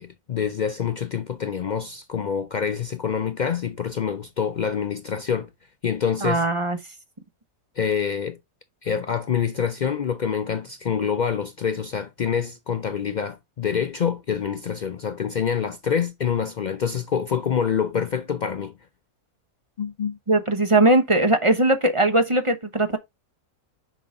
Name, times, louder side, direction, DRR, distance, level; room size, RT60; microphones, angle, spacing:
voice 1, 0.0-5.5 5.8-6.4 7.8-8.4 8.8-18.7 19.8-20.2, left 7 dB, 90° left, 0.4 m, -26 dB
voice 2, 6.2-6.8 20.3-23.0, right 2 dB, 25° right, 0.9 m, -19 dB
6.1 x 5.6 x 3.7 m
omnidirectional pair, 1.5 m